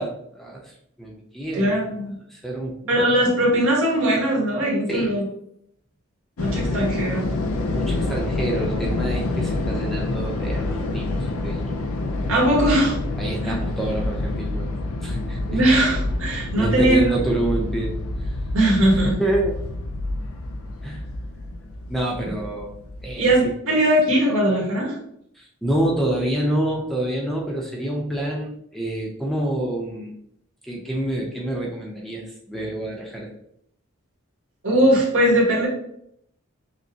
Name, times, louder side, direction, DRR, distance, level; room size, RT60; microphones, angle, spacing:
voice 1, 0.0-1.9 2.3-3.0 4.9-5.1 7.7-11.6 12.2-12.3 13.2-14.7 15.0-15.6 16.3-18.4 18.8-19.5 20.8-21.0 21.9-22.8 23.0-23.3 25.4-30.1 30.6-33.3, right 1 dB, ahead, -2 dB, 0.5 m, -27 dB
voice 2, 1.5-2.1 2.9-5.2 6.4-7.3 12.3-13.0 13.4-13.5 15.5-17.1 18.5-19.1 23.2-25.0 34.6-35.7, right 1 dB, 80° right, -3 dB, 1.5 m, -20 dB
sound 1, 6.4-23.5, left 2 dB, 85° left, 0.5 m, -27 dB
6.1 x 2.1 x 2.7 m, 0.72 s
head